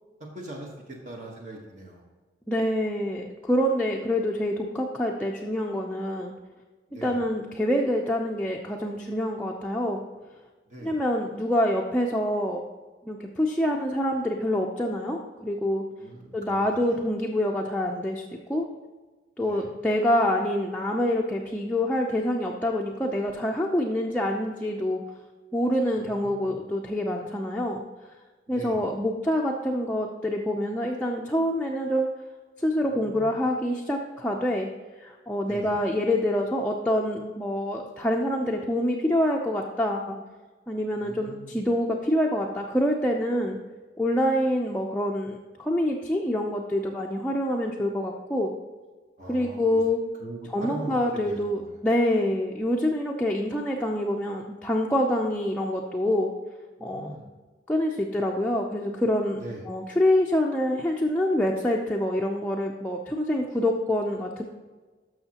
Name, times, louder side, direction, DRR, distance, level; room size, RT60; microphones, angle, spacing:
voice 1, 0.2-2.1 6.9-7.2 10.7-11.0 16.0-17.0 19.4-19.7 25.9-26.6 28.5-28.8 32.8-33.4 35.4-35.8 40.9-41.6 49.2-49.8 50.2-51.8 56.8-57.2 59.4-59.6, right 1 dB, 45° right, -1 dB, 1.2 m, -41 dB
voice 2, 2.5-6.3 7.0-10.0 10.8-12.6 13.1-15.8 16.3-18.6 19.4-25.0 25.5-27.8 28.5-32.1 32.6-34.7 35.0-40.2 40.7-43.6 44.0-48.5 49.3-50.0 50.5-56.3 56.8-57.2 57.7-64.4, left 1 dB, 5° left, -1 dB, 0.5 m, -26 dB
12.5 x 6.2 x 2.9 m, 1.3 s
head